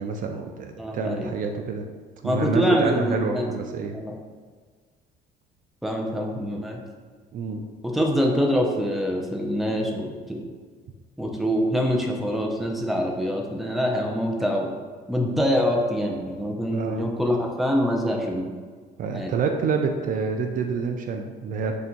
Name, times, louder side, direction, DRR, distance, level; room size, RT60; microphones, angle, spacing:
voice 1, 0.0-1.8 2.2-4.0 7.3-7.7 16.7-17.1 19.0-21.7, right 5 dB, 55° right, 4 dB, 0.4 m, -27 dB
voice 2, 0.8-1.3 2.2-3.5 3.9-4.1 5.8-6.8 7.8-10.5 11.2-14.7 15.1-18.5 19.1-19.3, equal, ahead, -1 dB, 0.6 m, -25 dB
3.4 x 2.7 x 4.4 m, 1.5 s
cardioid pair, 110°, 17 cm